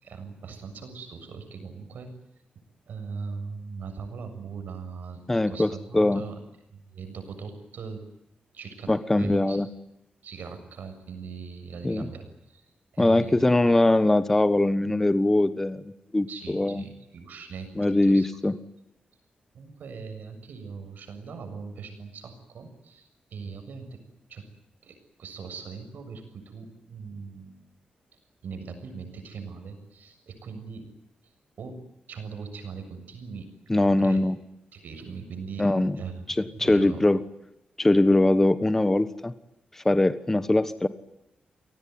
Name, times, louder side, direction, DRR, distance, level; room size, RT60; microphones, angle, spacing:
voice 1, 0.0-2.1 2.9-6.4 6.7-8.1 8.5-9.6 10.2-12.7 12.9-13.4 16.3-17.7 18.0-18.3 19.5-24.0 24.3-24.5 24.8-27.5 28.1-30.9 31.2-31.3 31.6-33.5 34.0-34.3 34.7-35.7 36.0-37.0, right 5 dB, 75° right, 7 dB, 7.2 m, -40 dB
voice 2, 5.3-6.2 8.9-9.7 11.8-12.1 13.0-16.3 16.5-16.8 17.8-18.5 33.7-34.4 35.6-36.0 36.4-37.2 37.8-39.3 39.8-40.9, left 2 dB, 10° left, 12 dB, 1.2 m, -22 dB
29.5 x 19.0 x 9.6 m, 0.83 s
wide cardioid pair, 165°, 3 cm